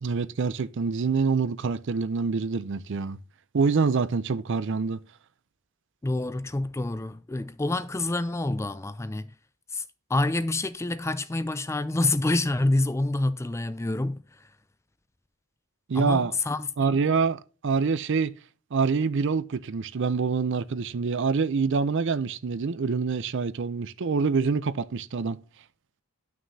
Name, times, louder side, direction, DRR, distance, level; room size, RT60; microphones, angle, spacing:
voice 1, 0.0-3.2 3.5-5.0 15.9-16.3 16.8-18.3 18.7-25.4, right 5 dB, 55° right, 0.5 m, -26 dB
voice 2, 6.0-9.3 9.7-9.8 10.1-14.4 15.9-16.9, left 2 dB, 10° left, 0.4 m, -27 dB
11.0 x 6.0 x 2.7 m
head